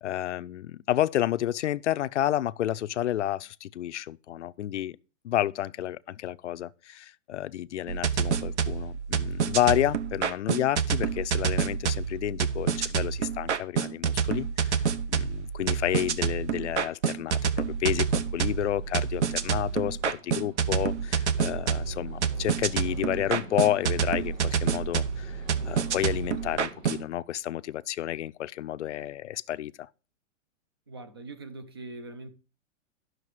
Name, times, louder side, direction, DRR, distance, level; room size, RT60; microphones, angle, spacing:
voice 1, 0.0-5.0 5.2-29.9, left 12 dB, 65° left, 0.6 m, -30 dB
sound 1, 7.9-27.0, right 7 dB, 60° right, 1.0 m, -28 dB
sound 2, 17.6-27.0, right 1 dB, 85° right, 5.9 m, -49 dB
voice 2, 30.9-32.3, right 3 dB, 20° right, 0.4 m, -42 dB
11.0 x 6.4 x 4.7 m
hypercardioid pair, 175°, 38 cm